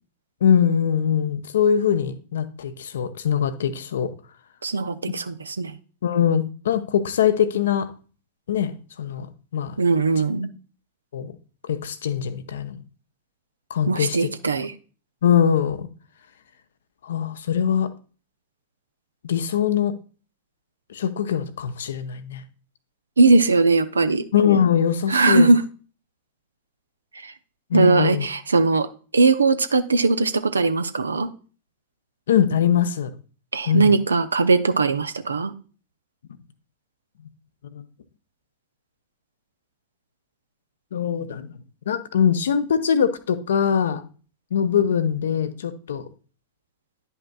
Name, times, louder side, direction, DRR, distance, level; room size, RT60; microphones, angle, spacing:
voice 1, 0.4-4.1 6.0-7.9 8.5-8.7 9.0-9.3 9.5-9.7 11.1-11.3 11.7-12.8 13.7-14.3 15.2-15.9 17.0-17.9 19.2-20.0 20.9-22.4 24.3-25.5 27.7-28.3 32.3-33.1 33.7-33.9 37.7-37.8 40.9-41.5 41.9-44.0 44.5-46.0, left 8 dB, 65° left, 0.6 m, -22 dB
voice 2, 4.6-5.8 9.8-10.5 13.9-14.7 23.2-24.3 25.1-25.6 27.1-27.3 27.7-28.9 29.1-31.3 33.5-35.5, right 3 dB, 75° right, 0.5 m, -19 dB
10.5 x 5.4 x 2.3 m
figure-of-eight pair, 90°, 0 cm